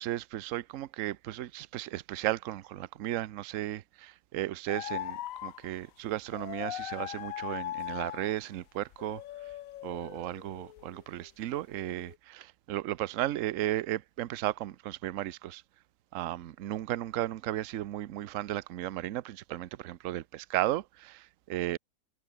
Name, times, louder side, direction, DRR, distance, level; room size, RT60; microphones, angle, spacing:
voice 1, 0.0-9.2 9.8-15.6 16.1-21.8, right 14 dB, 65° right, 1.0 m, -35 dB
sound 1, 4.7-5.7 6.3-8.5 8.9-11.3 11.7-12.2, left 13 dB, 70° left, 1.0 m, -40 dB
omnidirectional pair, 1.6 m